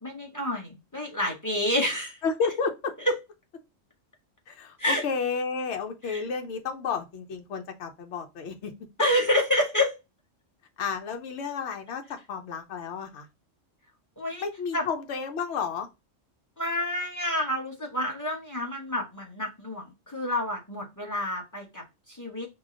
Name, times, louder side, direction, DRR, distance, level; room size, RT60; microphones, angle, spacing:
voice 1, 0.0-2.2 3.0-3.1 4.8-5.0 6.0-6.2 9.0-9.9 14.2-14.4 14.7-14.8 16.6-22.5, left 1 dB, 15° left, 1.0 m, -28 dB
voice 2, 2.2-2.9 4.5-8.7 10.8-12.0 12.3-13.3 14.4-15.9, left 5 dB, 65° left, 1.0 m, -31 dB
4.8 x 2.2 x 3.7 m
omnidirectional pair, 1.3 m